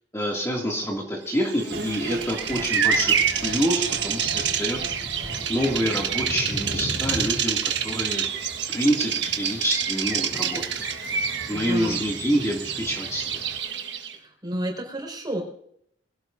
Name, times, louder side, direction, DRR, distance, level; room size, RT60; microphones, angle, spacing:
voice 1, 0.1-3.2 3.4-4.8 5.1-8.4 8.7-10.6 11.5-13.4, equal, 15° left, -2 dB, 2.4 m, -27 dB
Bird vocalization bird call bird song, 1.5-14.2, right 7 dB, 90° right, 1.4 m, -27 dB
sound 1, 1.7-7.7, right 2 dB, 60° right, 4.1 m, -40 dB
sound 2, 3.2-13.6, equal, 45° left, 2.5 m, -40 dB
voice 2, 11.5-12.0 14.1-15.4, right 1 dB, 25° right, 1 dB, 5.0 m, -31 dB
23.0 x 16.5 x 2.7 m, 0.71 s
head